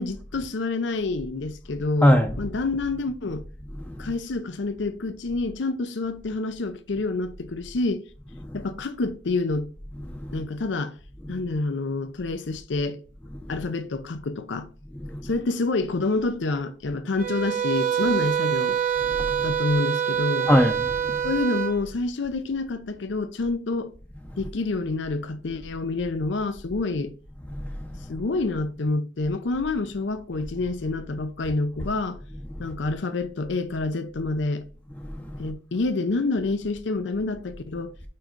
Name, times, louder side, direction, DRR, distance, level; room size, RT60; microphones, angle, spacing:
voice 1, 0.0-3.4 4.0-8.0 8.5-9.7 10.3-10.9 11.3-13.0 13.5-14.7 15.2-18.8 19.4-20.5 21.2-23.9 24.4-27.1 28.1-32.2 32.6-34.6 35.4-37.9, left 3 dB, 70° left, 0.6 m, -28 dB
voice 2, 2.0-2.4 3.8-4.1 8.4-8.6 10.0-10.4 11.2-11.4 13.3-13.4 14.9-15.3 19.3-19.5 20.5-21.2 27.5-27.9 32.5-32.7 35.2-35.5, equal, 10° left, 0.6 m, -24 dB
sound 1, 17.2-21.8, right 9 dB, 45° right, 0.9 m, -25 dB
5.2 x 4.7 x 4.4 m
head